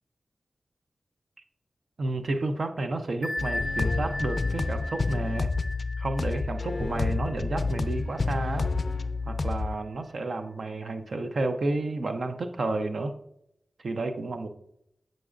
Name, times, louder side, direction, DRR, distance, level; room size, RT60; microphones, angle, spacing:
voice 1, 2.0-5.5 6.0-8.7 9.3-13.1 13.8-14.5, right 2 dB, 70° right, 7 dB, 0.5 m, -31 dB
Bell, 3.2-8.7, left 1 dB, 35° right, 1.6 m, -37 dB
sound 1, 3.4-9.8, left 3 dB, 60° left, 0.4 m, -29 dB
7.6 x 5.1 x 2.5 m, 0.78 s
cardioid pair, 40°, 0 cm